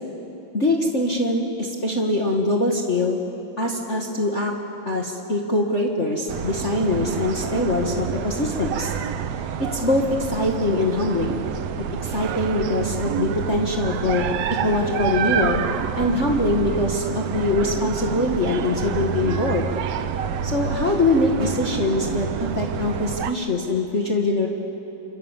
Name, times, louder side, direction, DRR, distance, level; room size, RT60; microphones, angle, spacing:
voice 1, 0.5-3.2 3.6-4.5 4.8-8.9 9.6-11.4 12.0-14.3 14.6-15.6 16.0-19.7 20.4-24.5, left 2 dB, 40° left, 0 dB, 1.0 m, -23 dB
sound 1, 6.3-23.3, right 8 dB, 70° right, 1.6 m, -28 dB
29.5 x 27.0 x 7.5 m, 3.0 s
omnidirectional pair, 4.0 m